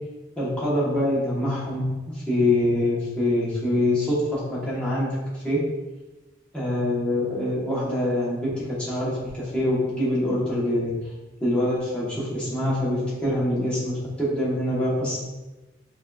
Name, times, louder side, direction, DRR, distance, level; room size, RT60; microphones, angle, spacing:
voice 1, 0.4-5.6 6.5-10.9 11.4-15.2, left 1 dB, 5° left, -9 dB, 1.1 m, -25 dB
5.2 x 2.6 x 2.4 m, 1.1 s
head